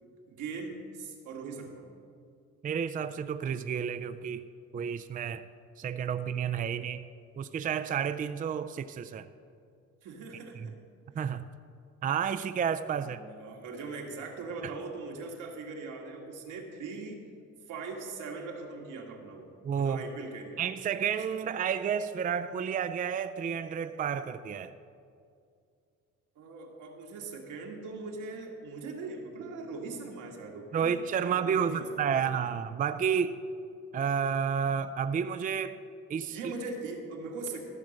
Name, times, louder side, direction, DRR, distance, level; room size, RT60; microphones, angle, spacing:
voice 1, 0.0-1.8 10.0-10.8 13.0-17.2 17.7-20.6 26.4-31.0 31.3-32.5 36.3-37.6, right 3 dB, 85° right, 1 dB, 1.7 m, -41 dB
voice 2, 2.6-4.5 4.7-5.4 5.8-7.1 7.4-9.3 10.6-10.7 11.2-11.5 12.0-13.2 19.6-20.0 20.6-24.7 30.7-33.4 33.9-35.8 36.1-36.5, right 7 dB, 30° right, 10 dB, 0.4 m, -31 dB
14.0 x 6.1 x 6.4 m, 2.4 s
cardioid pair, 90°, 30 cm